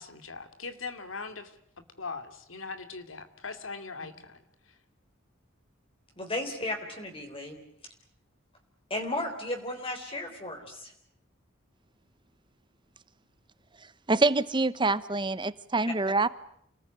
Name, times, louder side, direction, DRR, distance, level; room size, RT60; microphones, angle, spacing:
voice 1, 0.0-1.6 2.0-4.8, left 4 dB, 85° left, 8 dB, 2.7 m, -40 dB
voice 2, 6.2-7.6 8.9-10.9, left 1 dB, 30° left, 4 dB, 3.9 m, -34 dB
voice 3, 14.1-16.3, right 3 dB, 25° right, 15 dB, 1.0 m, -25 dB
29.0 x 19.5 x 9.6 m, 0.72 s
head